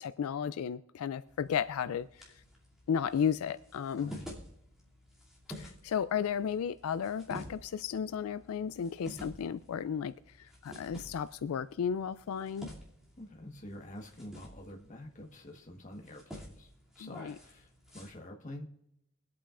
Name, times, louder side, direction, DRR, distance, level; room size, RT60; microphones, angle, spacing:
voice 1, 0.0-2.2 2.9-4.1 5.6-12.7 17.0-17.3, left 7 dB, 80° left, 0.3 m, -34 dB
sound 1, 1.3-18.1, equal, 5° right, 2.6 m, -51 dB
voice 2, 4.0-4.3 13.2-16.7 16.9-18.7, left 1 dB, 35° left, 1.3 m, -47 dB
23.0 x 8.5 x 2.5 m
head